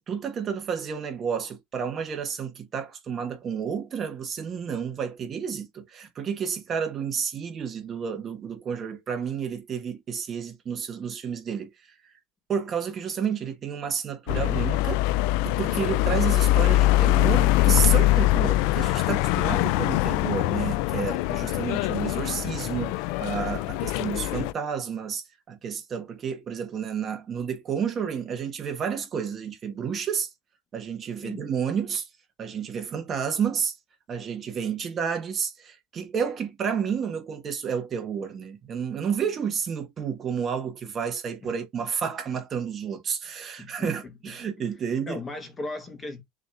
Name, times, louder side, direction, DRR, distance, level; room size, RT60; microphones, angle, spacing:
voice 1, 0.0-11.7 12.5-15.0 15.4-30.3 30.7-32.1 32.4-33.7 34.1-45.2, right 7 dB, 30° right, 1.3 m, -31 dB
sound 1, 14.3-24.5, left 16 dB, 65° left, 0.3 m, -23 dB
voice 2, 31.2-31.6 32.7-32.8 41.4-41.5 43.6-44.4 44.8-46.2, left 2 dB, 15° left, 1.1 m, -38 dB
6.3 x 3.0 x 2.5 m
cardioid pair, 155°, 0 cm